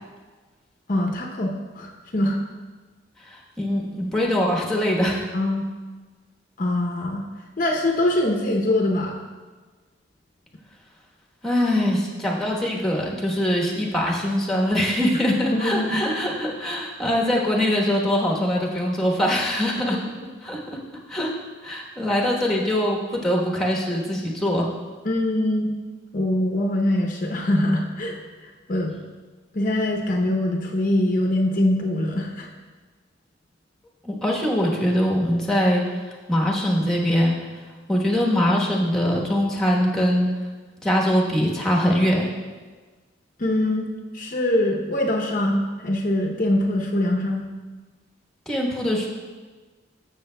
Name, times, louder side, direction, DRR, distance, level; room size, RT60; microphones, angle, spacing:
voice 1, 0.9-2.4 5.3-5.7 6.6-7.2 7.6-9.2 15.5-16.0 25.0-25.7 26.1-28.2 28.4-29.0 29.5-32.5 43.4-43.9 44.1-47.5, left 1 dB, 45° left, 1 dB, 0.7 m, -23 dB
voice 2, 3.3-5.3 11.4-20.0 20.4-20.8 21.1-21.3 21.6-24.7 34.0-35.8 36.3-37.3 37.9-40.3 40.8-42.3 48.5-49.1, equal, 5° left, -3 dB, 1.1 m, -22 dB
13.5 x 6.6 x 2.2 m, 1.4 s
head